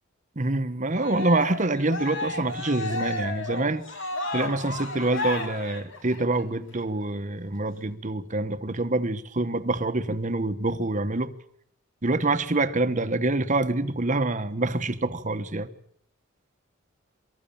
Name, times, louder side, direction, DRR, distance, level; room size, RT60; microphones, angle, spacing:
voice 1, 0.4-3.8 4.3-11.3 12.0-15.7, right 2 dB, 40° right, 1.2 m, -26 dB
Cheering, 0.9-6.4, left 2 dB, 65° left, 2.9 m, -33 dB
24.5 x 14.0 x 8.8 m
head